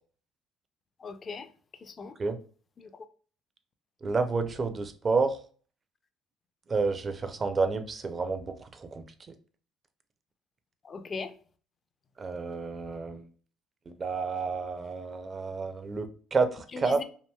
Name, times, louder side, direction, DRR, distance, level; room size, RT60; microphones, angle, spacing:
voice 1, 1.0-1.5 1.8-2.2 2.8-3.0 10.8-11.3 16.7-17.0, left 4 dB, 40° left, 0.4 m, -39 dB
voice 2, 4.0-5.4 6.7-9.0 12.2-13.2 13.9-17.0, right 4 dB, 35° right, 0.4 m, -30 dB
2.9 x 2.5 x 2.2 m
supercardioid pair, 75°, 0 cm